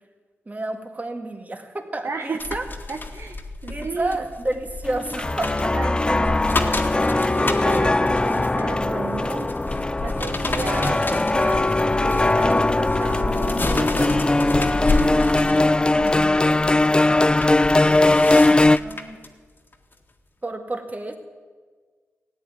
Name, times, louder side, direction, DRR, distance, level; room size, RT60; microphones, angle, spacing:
voice 1, 0.5-2.6 3.7-5.7 18.6-19.2 20.4-21.2, right 2 dB, 30° right, 5 dB, 2.0 m, -30 dB
voice 2, 2.0-2.6 2.9-4.2 5.7-9.5 10.0-16.6 17.8-18.8, right 4 dB, 60° right, 5 dB, 0.9 m, -34 dB
sound 1, 2.4-19.3 19.7-19.9, left 2 dB, 40° left, 1.7 m, -30 dB
sound 2, 4.9-18.8, left 2 dB, 20° left, 0.3 m, -20 dB
14.5 x 9.5 x 9.2 m, 1.5 s
cardioid pair, 55°, 5 cm